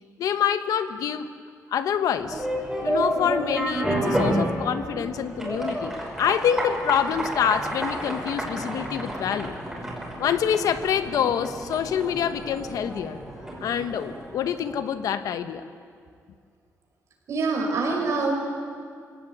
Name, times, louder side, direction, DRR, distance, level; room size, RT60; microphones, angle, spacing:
voice 1, 0.2-1.3 1.7-2.5 2.8-9.5 10.2-13.2 13.6-15.6, left 8 dB, 80° left, 10 dB, 1.2 m, -26 dB
sound 1, 2.2-14.9, right 1 dB, 5° right, 5.8 m, -30 dB
voice 2, 17.3-18.6, right 3 dB, 55° right, 1 dB, 5.9 m, -25 dB
26.0 x 17.0 x 9.4 m, 2.2 s
wide cardioid pair, 160°, 6 cm